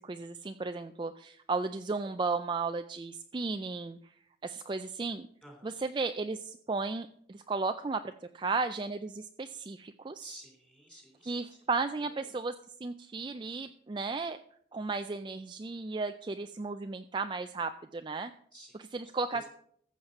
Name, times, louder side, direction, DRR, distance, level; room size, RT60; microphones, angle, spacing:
voice 1, 0.0-4.1 4.4-5.3 5.6-10.4 11.3-12.5 12.8-14.4 14.7-18.3 18.9-19.5, right 4 dB, 25° right, 8 dB, 0.3 m, -34 dB
voice 2, 5.4-5.7 10.2-11.6 12.1-12.3 18.5-19.4, equal, 5° left, 2 dB, 3.3 m, -53 dB
14.5 x 7.4 x 5.4 m, 0.66 s
head